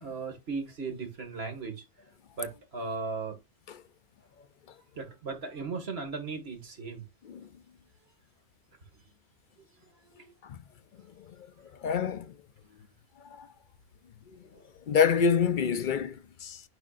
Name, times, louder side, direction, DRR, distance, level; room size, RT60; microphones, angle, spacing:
voice 1, 0.0-1.8 2.4-3.4 4.9-7.0 10.0-10.3 14.5-14.6, right 4 dB, 75° right, 2.1 m, -37 dB
voice 2, 11.8-12.3 13.3-13.5 14.3-14.4 14.9-16.6, left 6 dB, 60° left, 0.6 m, -27 dB
11.0 x 5.0 x 2.5 m
omnidirectional pair, 1.1 m